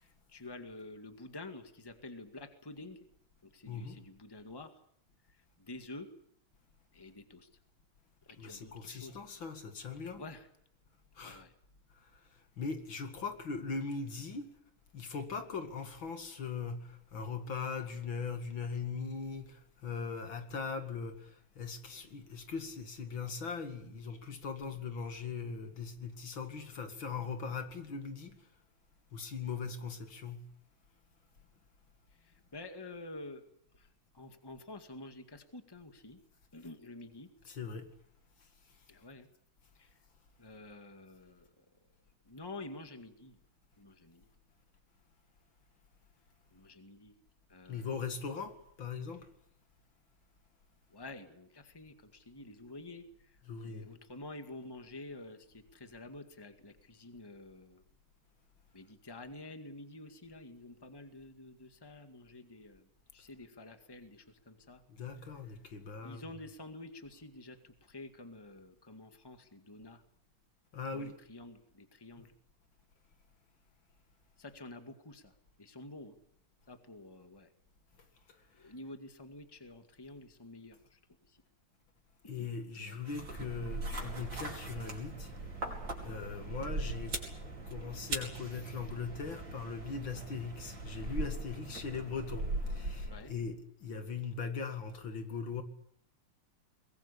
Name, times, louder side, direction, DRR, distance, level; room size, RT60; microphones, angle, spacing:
voice 1, 0.0-3.1 3.4-4.8 5.3-6.1 6.9-7.5 8.2-9.2 10.1-10.5 11.2-11.5 32.1-33.5 33.7-33.9 34.1-36.2 36.5-37.3 38.9-39.3 39.7-40.0 40.4-41.6 42.2-43.4 43.8-44.3 46.5-47.2 47.5-47.9 50.9-57.8 58.7-64.8 65.5-65.6 66.0-70.0 70.9-72.3 74.4-76.2 76.7-77.5 78.5-81.0 81.3-81.4 82.2-82.5 82.7-83.0 93.0-93.3, left 2 dB, 10° left, 1.9 m, -49 dB
voice 2, 3.7-4.0 8.4-10.3 11.2-11.4 11.9-12.2 12.6-14.5 14.9-28.5 29.1-30.5 37.4-37.9 47.7-49.3 53.4-53.9 64.9-66.4 70.7-71.2 78.6-78.7 82.3-85.3 85.7-87.2 87.7-95.6, left 5 dB, 65° left, 3.0 m, -40 dB
sound 1, 83.0-93.4, right 2 dB, 55° right, 5.9 m, -40 dB
23.0 x 22.0 x 8.5 m
omnidirectional pair, 2.3 m